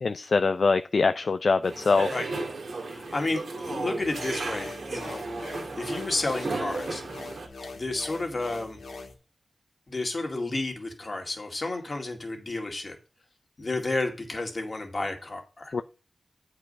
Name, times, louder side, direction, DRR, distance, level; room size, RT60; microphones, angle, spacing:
voice 1, 0.0-2.1 15.7-15.8, left 4 dB, 65° left, 9 dB, 0.4 m, -23 dB
sound 1, 1.6-7.5, right 3 dB, 80° right, 2.1 m, -34 dB
voice 2, 2.8-7.0 7.7-8.8 9.9-13.0 13.6-15.7, left 2 dB, 45° left, 3 dB, 2.2 m, -31 dB
sound 2, 4.0-9.1, left 3 dB, 85° left, 1.9 m, -42 dB
8.5 x 4.8 x 5.3 m, 0.34 s
wide cardioid pair, 70°, 0 cm